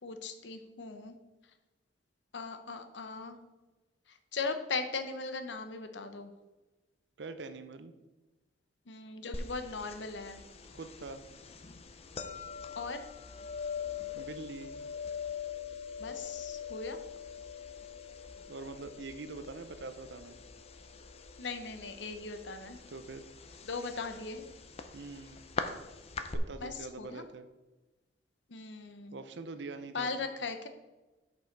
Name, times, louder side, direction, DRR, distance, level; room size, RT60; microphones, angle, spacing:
voice 1, 0.0-1.2 2.3-3.4 4.1-6.3 8.9-10.4 12.8-13.1 16.0-17.0 21.4-22.8 23.6-24.5 26.6-27.3 28.5-29.2 29.9-30.7, left 4 dB, 70° left, 8 dB, 0.7 m, -39 dB
voice 2, 7.2-7.9 10.7-11.2 14.1-14.8 18.5-20.4 22.9-23.2 24.9-25.5 26.3-27.5 29.1-30.3, right 3 dB, 65° right, 10 dB, 0.6 m, -44 dB
sound 1, 9.3-26.4, left 6 dB, 35° left, 0.5 m, -43 dB
6.5 x 5.5 x 4.6 m, 1.1 s
head